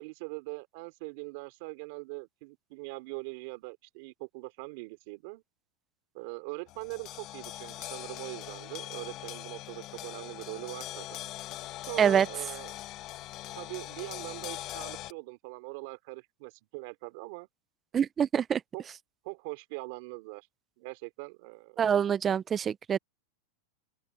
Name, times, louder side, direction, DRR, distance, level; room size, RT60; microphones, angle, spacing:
voice 1, 0.0-5.4 6.1-11.2 11.9-12.7 13.6-17.5 18.7-18.8 19.2-20.5 20.8-21.8, right 28 dB, 55° right, 3.7 m, -42 dB
sound 1, 6.7-15.1, left 15 dB, 40° left, 2.0 m, -42 dB
voice 2, 17.9-18.6 21.8-23.0, right 8 dB, 20° right, 0.5 m, -25 dB
open air
supercardioid pair, 145°, 0 cm